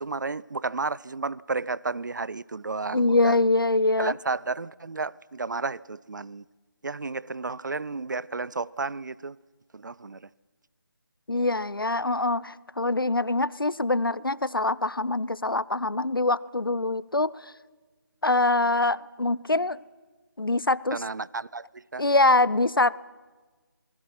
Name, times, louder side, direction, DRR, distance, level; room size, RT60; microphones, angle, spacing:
voice 1, 0.0-3.4 4.0-6.4 6.8-9.4 9.7-10.3 20.9-22.1, right 3 dB, 60° right, 0.6 m, -32 dB
voice 2, 2.9-4.1 11.3-17.3 18.2-19.8 20.4-21.0 22.0-23.0, left 2 dB, 85° left, 0.7 m, -24 dB
26.5 x 20.0 x 5.9 m
figure-of-eight pair, 160°, 11 cm